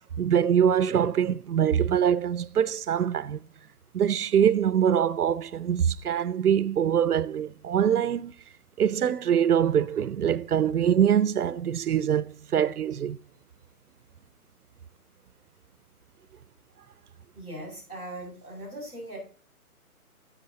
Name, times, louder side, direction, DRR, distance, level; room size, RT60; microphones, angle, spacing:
voice 1, 0.2-3.4 3.9-8.3 8.8-13.2, right 9 dB, 85° right, 0.8 m, -24 dB
voice 2, 17.3-19.2, right 1 dB, 10° left, 6.3 m, -39 dB
13.5 x 8.3 x 4.0 m
hypercardioid pair, 175°, 44 cm